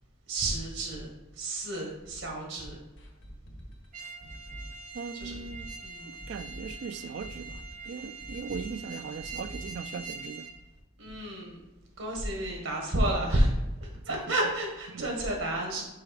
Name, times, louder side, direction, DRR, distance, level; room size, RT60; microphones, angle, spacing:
voice 1, 0.3-1.1 1.4-2.8 5.1-5.4 5.8-6.1 11.0-11.6 12.0-13.5 13.8-15.8, right 1 dB, 80° right, 1.6 m, -30 dB
sound 1, 3.0-10.7 11.0-11.1 11.5-11.6, equal, 65° left, 1.4 m, -46 dB
sound 2, 3.9-10.5, right 4 dB, 40° right, 0.7 m, -44 dB
voice 2, 4.9-5.8 6.1-10.5 13.9-14.2 14.9-15.1, right 5 dB, 55° right, 0.3 m, -39 dB
6.6 x 5.1 x 4.1 m
head